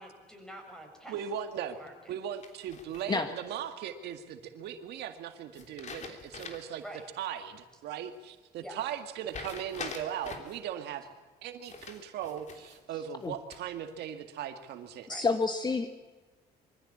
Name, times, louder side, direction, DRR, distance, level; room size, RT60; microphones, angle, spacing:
voice 1, 0.0-1.2 1.7-2.1 6.8-7.0 8.5-8.8 15.1-15.2, right 1 dB, 5° left, 3 dB, 6.9 m, -47 dB
voice 2, 1.1-1.8 2.1-6.8 7.2-11.1 11.4-15.1, right 9 dB, 75° right, 7 dB, 2.0 m, -38 dB
sound 1, 2.4-3.3 5.5-6.8 7.2-7.3 9.3-10.6 11.6-12.8 13.2-13.8, left 5 dB, 45° left, 3.4 m, -44 dB
voice 3, 15.1-15.9, left 4 dB, 25° left, 8 dB, 1.4 m, -29 dB
24.0 x 15.0 x 8.7 m, 1.3 s
cardioid pair, 110°, 17 cm